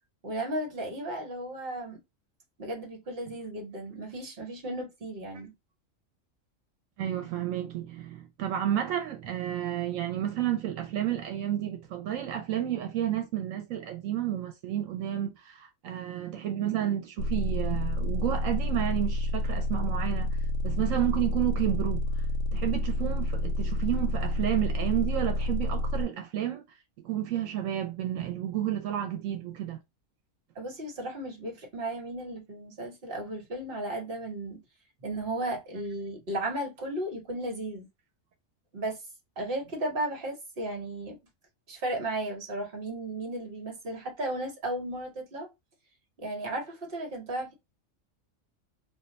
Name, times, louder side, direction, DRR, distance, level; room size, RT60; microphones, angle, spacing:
voice 1, 0.2-2.0 2.6-5.5 30.5-34.6 35.0-37.9 38.7-39.0 39.4-41.2 41.7-45.5 46.2-47.5, right 1 dB, 50° right, 1.2 m, -35 dB
voice 2, 7.0-20.3 20.6-22.2 22.5-26.6 27.0-29.8, right 11 dB, 80° right, 1.0 m, -31 dB
sound 1, 17.2-26.0, equal, 75° left, 0.9 m, -29 dB
2.5 x 2.3 x 3.9 m
omnidirectional pair, 1.3 m